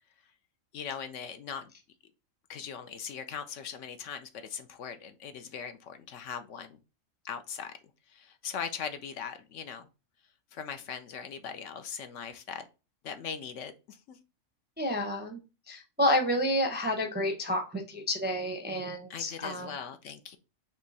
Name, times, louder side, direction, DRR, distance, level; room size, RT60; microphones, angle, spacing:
voice 1, 0.7-1.7 2.5-6.8 7.2-7.7 8.1-9.9 10.5-12.7 13.0-14.2 19.1-20.4, left 7 dB, 65° left, 8 dB, 0.9 m, -40 dB
voice 2, 14.8-15.4 15.7-19.7, left 1 dB, 15° right, 3 dB, 0.4 m, -29 dB
4.3 x 3.1 x 4.0 m, 0.29 s
omnidirectional pair, 1.4 m